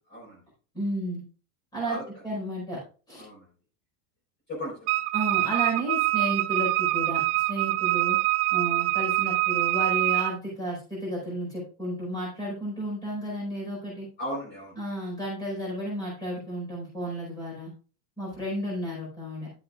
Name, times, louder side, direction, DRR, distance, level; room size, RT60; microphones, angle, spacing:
voice 1, 0.1-0.4 1.8-2.2 3.2-3.5 4.5-4.9 14.2-14.8, equal, 25° left, -4 dB, 4.3 m, -36 dB
voice 2, 0.7-1.2 1.7-2.0 2.2-2.8 3.1-3.3 5.1-8.2 8.5-14.1 14.8-17.7 18.2-19.5, right 1 dB, 10° left, -5 dB, 4.7 m, -32 dB
Wind instrument woodwind instrument, 4.9-10.4, right 19 dB, 55° right, 0.6 m, -25 dB
12.0 x 7.8 x 2.4 m, 0.38 s
supercardioid pair, 180°, 44 cm